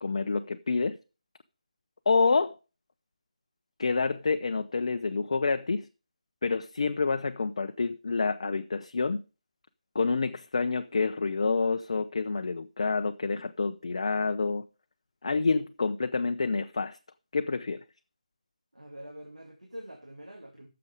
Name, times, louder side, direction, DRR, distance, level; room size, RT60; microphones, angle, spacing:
voice 1, 0.0-1.0 2.1-2.6 3.8-5.9 6.4-9.2 9.9-14.6 15.2-17.0 17.3-17.8, left 4 dB, 50° left, 0.5 m, -28 dB
voice 2, 18.7-20.7, equal, 80° right, 2.0 m, -45 dB
10.5 x 6.8 x 4.9 m
figure-of-eight pair, 155°, 4 cm